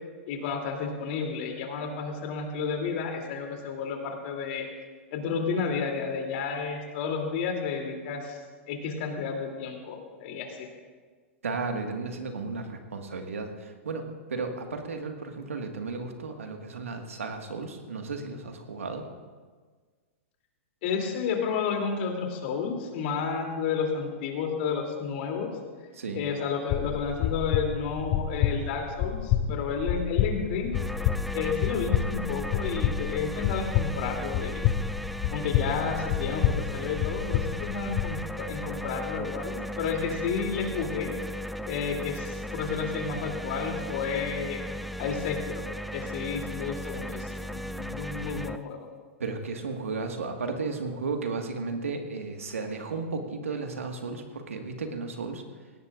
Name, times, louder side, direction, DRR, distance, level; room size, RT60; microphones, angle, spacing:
voice 1, 0.3-4.7 5.1-8.4 8.7-10.7 20.8-25.5 26.1-30.7 31.3-34.7 35.3-41.1 41.7-44.6 45.0-45.7 45.9-48.9, left 5 dB, 55° left, 2 dB, 3.0 m, -31 dB
voice 2, 11.4-19.1 25.9-26.2 49.2-55.4, right 4 dB, 85° right, 4 dB, 1.7 m, -34 dB
sound 1, 26.7-38.1, left 10 dB, 40° left, 0.7 m, -29 dB
sound 2, 30.7-48.6, equal, ahead, 0.3 m, -36 dB
17.5 x 17.5 x 2.5 m, 1.5 s
hypercardioid pair, 115°, 7 cm